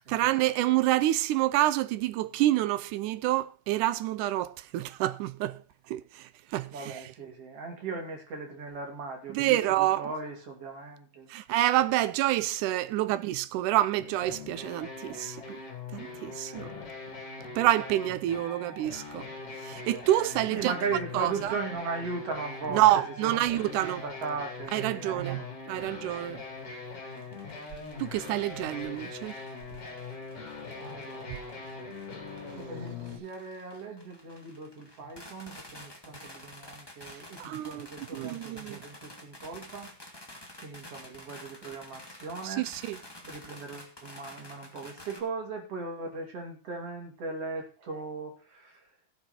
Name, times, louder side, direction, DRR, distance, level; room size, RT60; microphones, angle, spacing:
voice 1, 0.1-7.0 9.3-10.1 11.3-15.6 15.9-16.7 17.6-19.3 19.6-20.7 21.1-21.6 22.7-24.0 24.7-26.4 28.0-29.4 31.3-31.4 37.1-38.8 42.4-43.0, right 14 dB, 75° right, 2.0 m, -28 dB
voice 2, 6.7-11.3 13.0-13.1 16.4-16.5 20.5-22.8 23.2-25.5 30.7-31.6 32.6-39.9 40.6-42.7 43.2-48.8, right 4 dB, 45° right, 3.5 m, -38 dB
sound 1, 14.0-33.2, left 4 dB, 45° left, 4.6 m, -42 dB
sound 2, 27.1-45.2, left 1 dB, 10° left, 1.8 m, -50 dB
16.5 x 7.3 x 4.3 m
omnidirectional pair, 4.0 m